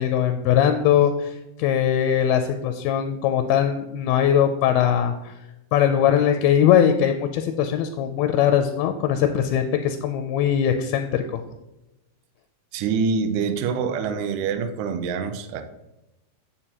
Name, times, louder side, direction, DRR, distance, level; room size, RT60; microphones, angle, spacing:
voice 1, 0.0-5.3 5.7-11.4, left 9 dB, 85° left, 7 dB, 2.4 m, -21 dB
voice 2, 12.7-15.6, right 5 dB, 90° right, 8 dB, 1.8 m, -25 dB
8.7 x 6.7 x 2.9 m, 0.96 s
omnidirectional pair, 4.6 m